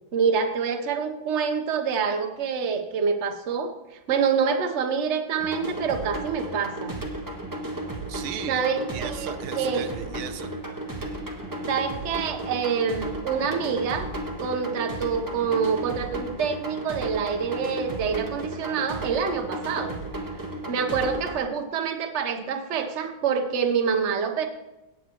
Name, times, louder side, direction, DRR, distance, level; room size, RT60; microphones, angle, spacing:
voice 1, 0.1-3.7 4.1-6.9 8.5-9.9 11.7-14.1 14.4-19.9 20.6-24.5, right 6 dB, 45° right, 4 dB, 1.0 m, -26 dB
sound 1, 5.4-21.4, right 1 dB, 10° right, 1.1 m, -34 dB
voice 2, 8.1-8.6 8.9-10.5, right 10 dB, 80° right, 10 dB, 1.5 m, -36 dB
18.0 x 8.2 x 3.0 m, 0.98 s
omnidirectional pair, 2.2 m